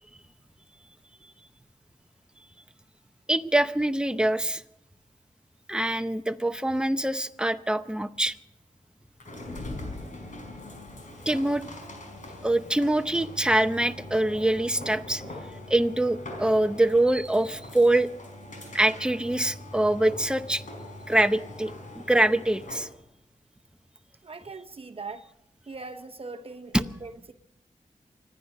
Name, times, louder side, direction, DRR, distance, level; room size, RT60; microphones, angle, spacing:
voice 1, 3.3-4.6 5.7-8.3 11.3-11.6 12.4-15.2 15.7-18.1 18.7-20.6 21.1-22.9 26.7-26.8, right 1 dB, 5° right, 0.7 m, -24 dB
sound 1, 9.2-22.9, left 1 dB, 70° left, 5.0 m, -42 dB
voice 2, 24.2-25.3 25.7-27.3, right 3 dB, 45° right, 1.0 m, -40 dB
25.5 x 10.5 x 5.4 m
wide cardioid pair, 85°, 14 cm